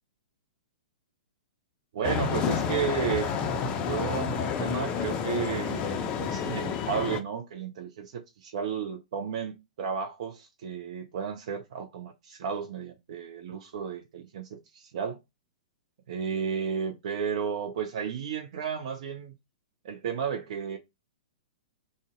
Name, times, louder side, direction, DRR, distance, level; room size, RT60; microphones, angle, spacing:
voice 1, 1.9-3.4 3.7-15.2 16.1-19.3 19.8-20.8, right 7 dB, 55° right, 0.6 m, -33 dB
sound 1, 2.0-7.2, left 7 dB, 30° left, 0.4 m, -30 dB
2.6 x 2.1 x 3.6 m
figure-of-eight pair, 110°, 4 cm